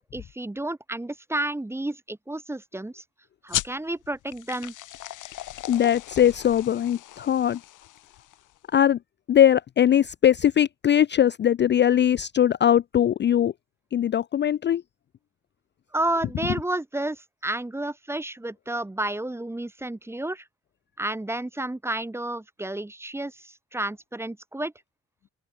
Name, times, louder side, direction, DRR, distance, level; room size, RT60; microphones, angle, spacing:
voice 1, 0.1-3.0 3.4-4.7 15.9-20.4 21.0-24.7, right 1 dB, 10° right, 1.0 m, -31 dB
sound 1, 3.5-8.6, left 15 dB, 85° left, 2.3 m, -36 dB
voice 2, 5.7-7.6 8.7-9.0 9.3-13.5 13.9-14.8, left 10 dB, 35° left, 0.4 m, -20 dB
open air
cardioid pair, 90°, 30 cm